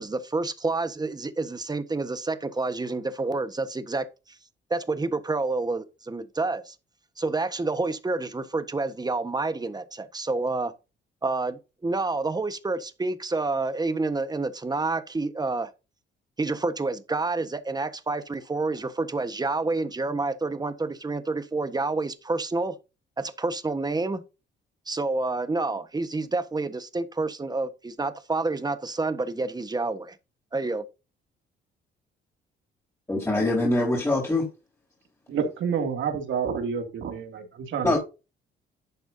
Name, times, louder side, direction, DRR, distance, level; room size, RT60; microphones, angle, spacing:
voice 1, 0.0-4.4 4.7-6.7 7.2-10.7 11.2-15.7 16.4-22.8 23.2-24.2 24.9-30.2 30.5-30.8, right 3 dB, 20° right, 1.4 m, -28 dB
voice 2, 33.1-34.5 37.8-38.0, left 2 dB, 15° left, 4.4 m, -23 dB
voice 3, 35.3-37.9, right 6 dB, 75° right, 2.6 m, -29 dB
11.5 x 7.8 x 2.8 m
cardioid pair, 90°, 20 cm